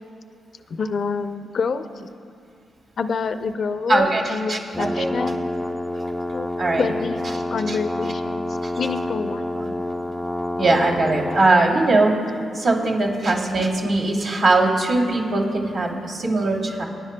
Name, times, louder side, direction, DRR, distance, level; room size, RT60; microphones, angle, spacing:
voice 1, 0.7-1.9 3.0-5.4 6.3-6.5 6.8-9.4 10.7-10.8 12.8-12.9 15.9-16.0, left 5 dB, 60° left, 10 dB, 0.5 m, -27 dB
voice 2, 3.9-5.1 6.6-6.9 7.7-7.8 8.6-8.7 9.6-9.7 10.6-12.1 12.5-16.8, right 2 dB, 80° right, -5 dB, 2.6 m, -20 dB
sound 1, 4.7-11.5, left 1 dB, 5° left, 0.4 m, -28 dB
24.0 x 10.0 x 2.2 m, 2.4 s
supercardioid pair, 55°, 0 cm